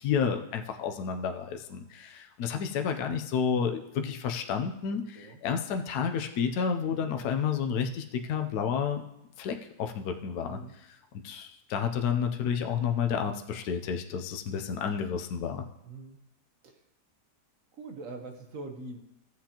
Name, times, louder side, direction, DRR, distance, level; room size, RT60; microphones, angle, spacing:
voice 1, 0.0-9.0 9.4-10.6 11.2-15.7, left 7 dB, 70° left, 5 dB, 1.2 m, -30 dB
voice 2, 15.8-16.2 16.6-16.8 17.7-19.0, right 2 dB, 55° right, 4 dB, 1.3 m, -43 dB
14.5 x 7.7 x 2.9 m, 0.85 s
omnidirectional pair, 1.9 m